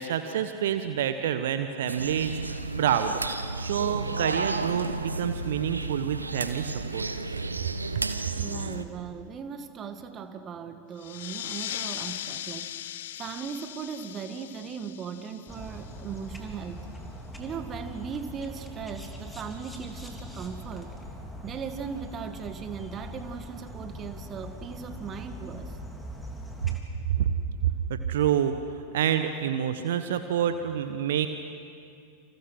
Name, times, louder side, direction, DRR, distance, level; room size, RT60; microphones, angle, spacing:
voice 1, 0.0-3.2 3.6-7.0 7.9-8.0 26.6-26.8 27.2-27.3 27.6-31.3, right 9 dB, 60° right, 9 dB, 1.3 m, -28 dB
sound 1, 1.9-8.8, right 3 dB, 80° right, 1.2 m, -32 dB
voice 2, 8.4-16.9 17.4-20.9 21.4-25.8, right 6 dB, 25° right, 8 dB, 2.0 m, -38 dB
sound 2, 11.0-16.2, left 12 dB, 55° left, 0.8 m, -39 dB
sound 3, 15.5-26.8, equal, 5° left, 3.6 m, -41 dB
29.5 x 28.5 x 6.4 m, 2.4 s
figure-of-eight pair, 90°, 0 cm